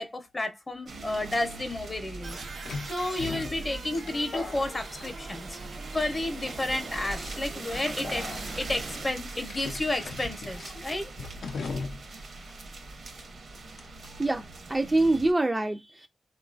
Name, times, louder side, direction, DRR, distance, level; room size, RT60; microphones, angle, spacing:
voice 1, 0.0-2.4 2.8-5.6 5.9-11.2, left 1 dB, 25° left, 0.6 m, -31 dB
sound 1, 0.9-15.3, right 3 dB, 70° right, 0.7 m, -42 dB
sound 2, 1.3-1.4 2.6-5.6 5.9-6.4 7.1-7.3 8.0-8.7 9.5-12.2 12.5-12.6 13.8-14.1, left 4 dB, 85° left, 0.5 m, -39 dB
sound 3, 2.2-9.1, right 3 dB, 90° right, 1.0 m, -43 dB
voice 2, 14.2-16.1, right 2 dB, 20° right, 0.3 m, -25 dB
3.6 x 2.3 x 2.4 m
wide cardioid pair, 120°, 0 cm